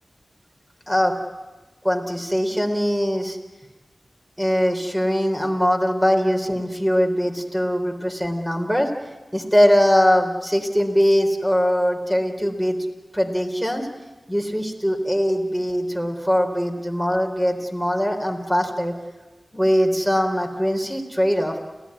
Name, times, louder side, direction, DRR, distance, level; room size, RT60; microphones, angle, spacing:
voice 1, 1.8-3.4 4.4-8.9 9.3-12.8 13.1-13.9 14.3-18.9 19.5-21.6, equal, 10° right, 4 dB, 4.0 m, -21 dB
29.0 x 16.0 x 9.9 m, 1.2 s
wide cardioid pair, 65°, 0 cm